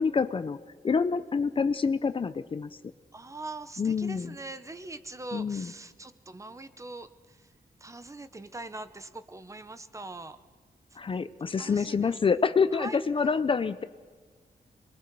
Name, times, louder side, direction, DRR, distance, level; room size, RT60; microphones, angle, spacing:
voice 1, 0.0-2.7 3.8-4.3 5.3-5.7 11.0-13.8, left 5 dB, 35° left, 13 dB, 0.5 m, -27 dB
voice 2, 3.1-7.4 7.8-10.4 11.6-12.1 12.7-13.0, right 2 dB, 20° right, 11 dB, 0.7 m, -42 dB
27.5 x 21.0 x 4.6 m, 1.5 s
wide cardioid pair, 175°, 16 cm